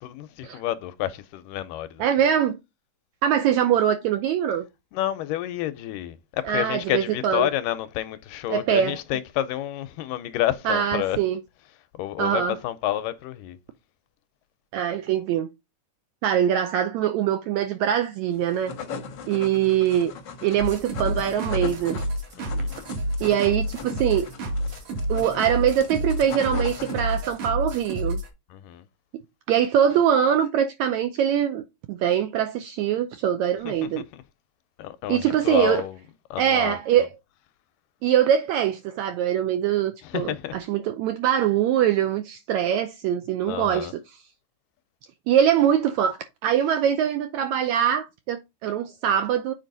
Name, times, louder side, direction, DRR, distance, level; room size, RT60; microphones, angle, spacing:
voice 1, 0.0-2.1 4.9-11.2 11.9-13.6 22.4-22.7 28.5-28.8 33.7-34.2 34.8-35.2 35.4-36.0 36.3-36.8 40.0-40.6 43.5-43.9, left 13 dB, 90° left, 2.3 m, -29 dB
voice 2, 2.0-2.6 3.2-4.6 6.4-7.5 8.5-9.0 10.6-11.4 12.2-12.6 14.7-15.5 16.2-18.7 19.3-20.1 20.4-22.0 23.2-24.3 25.1-28.2 29.5-31.6 31.9-34.0 35.1-35.8 36.4-37.1 38.0-44.2 45.3-49.5, right 9 dB, 85° right, 1.6 m, -23 dB
sound 1, 18.4-27.5, left 5 dB, 65° left, 1.1 m, -39 dB
sound 2, 20.6-28.3, equal, 70° right, 3.3 m, -29 dB
7.3 x 4.6 x 3.9 m
omnidirectional pair, 3.9 m